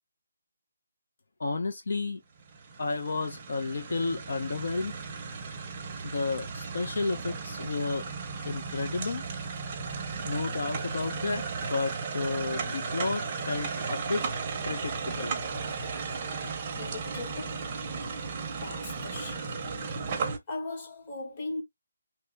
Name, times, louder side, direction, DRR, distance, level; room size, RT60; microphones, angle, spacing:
voice 1, 1.4-2.2 2.8-4.9 6.0-8.1 8.4-9.2 10.2-14.3 14.6-15.4, left 3 dB, 60° left, 0.7 m, -32 dB
sound 1, 2.4-20.4, right 5 dB, 20° right, 0.7 m, -35 dB
voice 2, 16.7-17.7 18.5-19.5 20.5-21.6, left 2 dB, 25° left, 1.2 m, -38 dB
3.2 x 2.4 x 3.2 m
hypercardioid pair, 175°, 0 cm